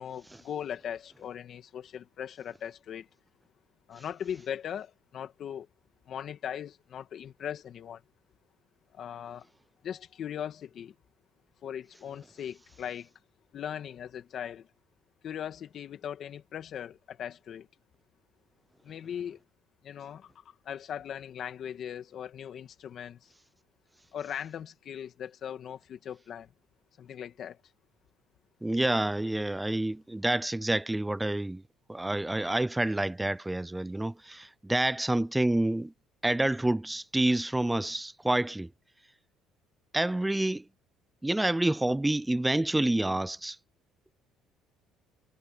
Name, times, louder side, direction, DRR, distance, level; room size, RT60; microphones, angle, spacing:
voice 1, 0.0-3.1 3.9-5.7 6.1-8.0 8.9-9.5 9.8-10.9 11.6-13.1 13.5-14.7 15.2-17.7 18.8-19.4 19.8-23.3 24.1-26.5 27.0-27.6, left 9 dB, 45° left, 2.4 m, -39 dB
voice 2, 28.6-31.6 31.9-35.9 36.2-38.7 39.9-40.6 41.2-43.6, right 1 dB, 5° right, 0.4 m, -28 dB
cardioid pair, 140°, 0 cm